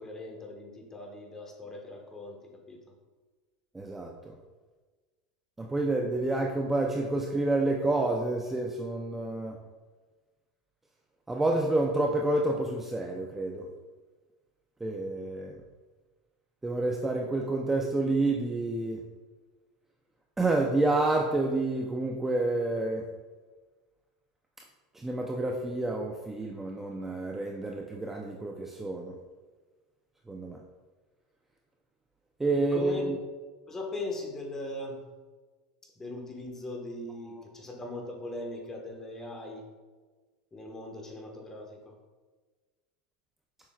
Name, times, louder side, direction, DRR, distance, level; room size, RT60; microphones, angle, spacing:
voice 1, 0.0-2.4 2.7-2.8 32.6-33.0 33.7-35.0 36.0-39.6 40.5-41.9, left 2 dB, 15° left, 1 dB, 1.4 m, -39 dB
voice 2, 3.7-4.3 5.6-9.6 11.3-13.7 14.8-15.6 16.6-19.0 20.4-23.0 24.9-29.1 30.3-30.6 32.4-33.2, right 2 dB, 10° right, 1 dB, 0.6 m, -29 dB
7.4 x 6.1 x 2.4 m, 1.3 s
supercardioid pair, 115°, 3 cm